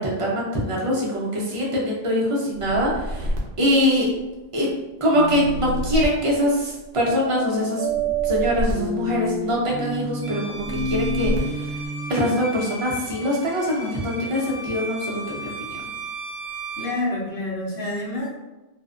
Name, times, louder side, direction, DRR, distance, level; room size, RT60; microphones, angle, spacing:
voice 1, 0.0-3.3 3.6-4.1 4.5-4.7 5.0-7.9 8.2-11.7 12.1-15.5 15.8-15.9, equal, 40° right, -4 dB, 0.5 m, -23 dB
sound 1, 2.5-4.5 5.2-7.1 7.9-9.8 10.5-11.9, equal, 65° right, 0.8 m, -30 dB
sound 2, 5.1-5.9 7.1-12.1, right 3 dB, 90° right, 1.0 m, -28 dB
Bowed string instrument, 10.2-17.0, right 2 dB, 20° right, 1.0 m, -36 dB
voice 2, 16.8-18.3, left 2 dB, 65° left, -5 dB, 0.9 m, -28 dB
2.4 x 2.1 x 2.4 m, 1.1 s
omnidirectional pair, 1.1 m